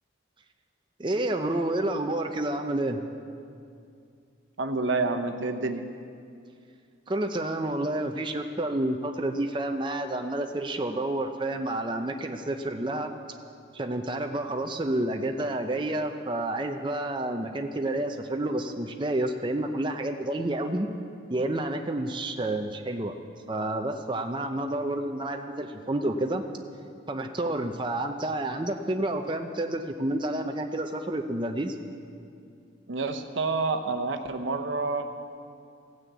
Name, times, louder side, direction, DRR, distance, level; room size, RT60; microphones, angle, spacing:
voice 1, 1.0-3.0 7.1-13.1 13.7-20.9 21.3-23.1 23.5-26.4 27.1-31.8, right 1 dB, 25° right, 5 dB, 0.6 m, -29 dB
voice 2, 4.6-5.8 32.9-35.0, right 3 dB, 80° right, 6 dB, 0.9 m, -28 dB
16.0 x 6.4 x 8.3 m, 2.4 s
head